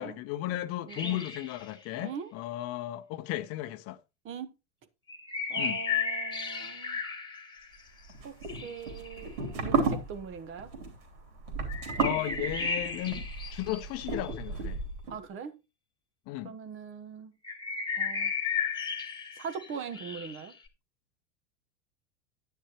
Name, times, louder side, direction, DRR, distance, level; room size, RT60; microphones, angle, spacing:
voice 1, 0.0-4.0 5.6-5.8 11.9-14.8 16.3-16.6, left 15 dB, 40° left, 0.8 m, -35 dB
sound 1, 0.9-1.7 5.1-7.8 8.4-9.3 11.7-14.3 17.4-20.5, left 5 dB, 10° left, 1.8 m, -34 dB
voice 2, 0.9-1.2 1.9-2.3 4.2-4.5 5.5-7.0 8.2-8.3 8.6-10.7 15.1-15.6 16.4-17.3 18.0-18.3 19.4-20.5, right 6 dB, 35° right, 1.3 m, -41 dB
sound 2, 8.1-15.1, right 4 dB, 55° right, 3.4 m, -33 dB
10.0 x 10.0 x 3.0 m
figure-of-eight pair, 85°, 35 cm